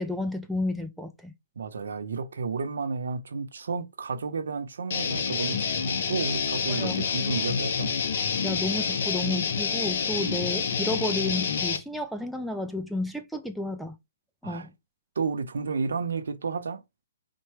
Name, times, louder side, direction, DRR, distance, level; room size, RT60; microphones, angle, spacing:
voice 1, 0.0-1.3 6.7-7.0 8.4-13.9 14.4-14.7, left 2 dB, ahead, 0.3 m, -31 dB
voice 2, 1.6-7.9 10.3-10.4 14.4-14.7 15.2-16.8, right 5 dB, 75° right, 0.8 m, -32 dB
Guitar, 4.9-11.8, left 6 dB, 40° left, 0.8 m, -28 dB
4.4 x 2.2 x 4.6 m
hypercardioid pair, 175°, 0 cm